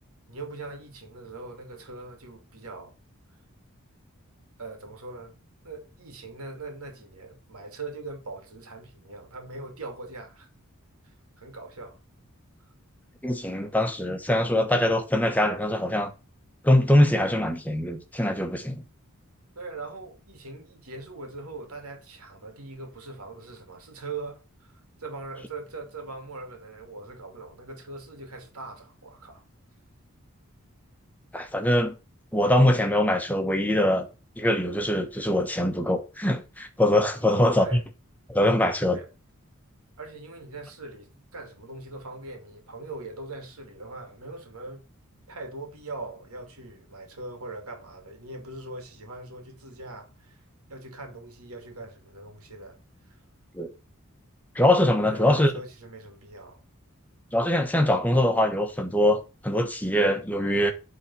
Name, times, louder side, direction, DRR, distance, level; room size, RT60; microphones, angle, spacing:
voice 1, 0.3-2.9 4.6-10.5 11.0-12.0 19.6-24.7 25.0-29.4 37.2-37.8 38.9-39.1 40.0-44.8 45.3-50.4 50.7-52.8 53.1-53.2 55.0-56.6, right 3 dB, 85° right, 2.4 m, -41 dB
voice 2, 13.2-16.1 16.6-18.8 31.3-31.9 32.3-34.1 34.4-37.8 38.3-39.0 53.5-53.7 54.5-55.5 57.3-60.7, left 1 dB, 5° left, 1.2 m, -23 dB
8.9 x 3.9 x 6.1 m
head